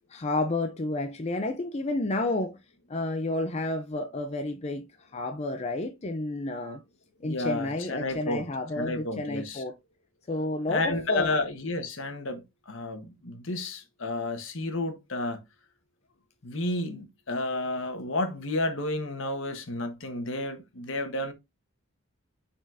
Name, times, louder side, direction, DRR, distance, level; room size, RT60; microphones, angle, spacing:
voice 1, 0.1-2.6 2.9-6.8 7.2-9.7 10.3-11.3, left 2 dB, 30° left, 0.5 m, -30 dB
voice 2, 7.2-8.5 8.8-9.6 10.7-15.4 16.4-21.3, left 2 dB, 65° left, 1.3 m, -31 dB
9.1 x 4.3 x 2.6 m
head